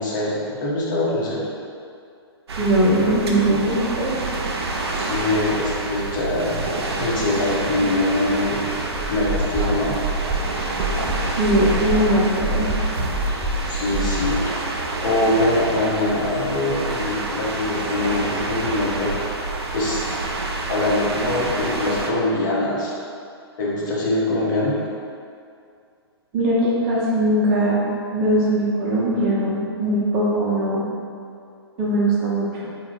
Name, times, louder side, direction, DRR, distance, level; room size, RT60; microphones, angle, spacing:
voice 1, 0.0-1.5 4.9-6.6 7.0-8.6 9.1-10.0 13.2-13.4 13.7-14.6 15.0-19.1 19.7-20.0 20.7-22.9 23.6-24.8, left 2 dB, 45° left, -5 dB, 0.8 m, -23 dB
sound 1, 2.5-22.1, right 2 dB, 70° right, 0.5 m, -27 dB
voice 2, 2.6-4.1 11.4-12.7 26.3-27.8 28.1-30.9 31.8-32.7, right 1 dB, 30° right, -6 dB, 0.8 m, -20 dB
sound 2, 8.9-14.5, right 1 dB, 5° right, 0.3 m, -27 dB
3.5 x 2.2 x 3.9 m, 2.4 s
figure-of-eight pair, 125°, 14 cm